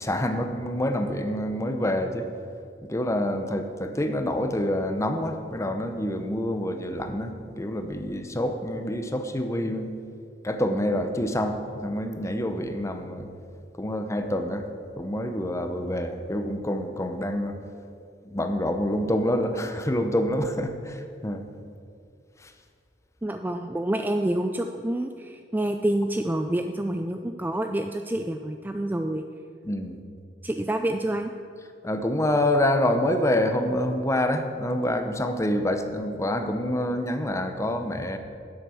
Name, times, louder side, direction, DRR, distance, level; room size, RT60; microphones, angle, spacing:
voice 1, 0.0-2.3 2.8-9.9 10.4-13.3 13.8-14.7 15.0-17.6 18.2-21.4 22.4-22.5 29.6-30.0 31.8-38.2, left 1 dB, 15° left, 7 dB, 0.8 m, -27 dB
voice 2, 23.2-29.3 30.4-31.3, right 1 dB, 10° right, 6 dB, 0.3 m, -27 dB
10.5 x 7.9 x 7.0 m, 2.4 s
head